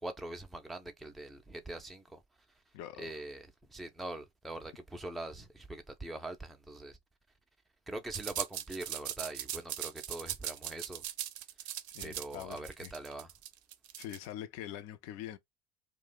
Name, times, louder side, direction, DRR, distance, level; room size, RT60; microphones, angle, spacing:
voice 1, 0.0-2.2 3.0-7.0 7.9-11.0 12.0-13.3, right 2 dB, ahead, 0.4 m, -43 dB
voice 2, 2.7-3.1 11.9-12.9 14.0-15.4, left 11 dB, 50° left, 0.5 m, -44 dB
sound 1, 8.1-14.3, right 12 dB, 75° right, 0.5 m, -39 dB
2.4 x 2.2 x 3.9 m
hypercardioid pair, 80°, 33 cm